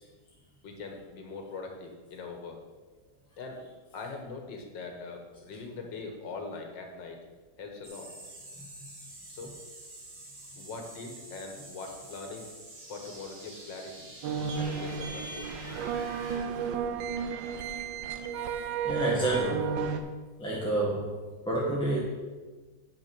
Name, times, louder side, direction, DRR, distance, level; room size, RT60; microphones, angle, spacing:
voice 1, 0.6-2.6 3.4-3.6 3.9-7.2 7.6-8.1 9.3-9.5 10.6-12.5 12.9-14.1 14.6-15.5, left 4 dB, 80° left, 3 dB, 1.9 m, -41 dB
sound 1, 7.8-16.4, right 1 dB, 40° right, 2.1 m, -47 dB
sound 2, 14.2-20.0, right 6 dB, 85° right, 1.4 m, -33 dB
voice 2, 18.8-19.8 20.4-21.2 21.4-22.0, right 2 dB, 5° left, -6 dB, 1.2 m, -28 dB
8.4 x 6.1 x 6.0 m, 1.3 s
omnidirectional pair, 1.9 m